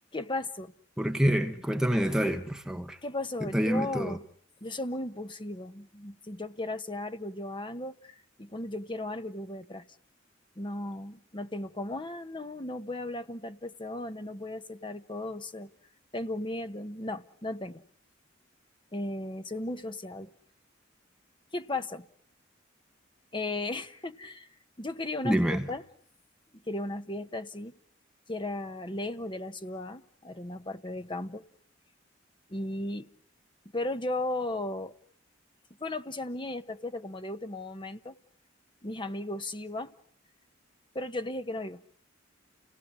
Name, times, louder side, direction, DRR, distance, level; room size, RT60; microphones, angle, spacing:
voice 1, 0.1-0.7 3.0-4.2 4.6-9.8 10.6-15.7 16.1-17.8 18.9-20.3 21.5-22.1 23.3-24.5 24.8-25.8 26.7-27.7 28.3-31.5 32.5-33.1 33.7-34.9 35.8-38.1 38.8-39.9 40.9-41.8, left 2 dB, 25° left, 1.3 m, -36 dB
voice 2, 1.0-3.0 3.4-4.2 25.2-25.7, equal, 5° right, 1.3 m, -27 dB
29.5 x 19.0 x 9.8 m
head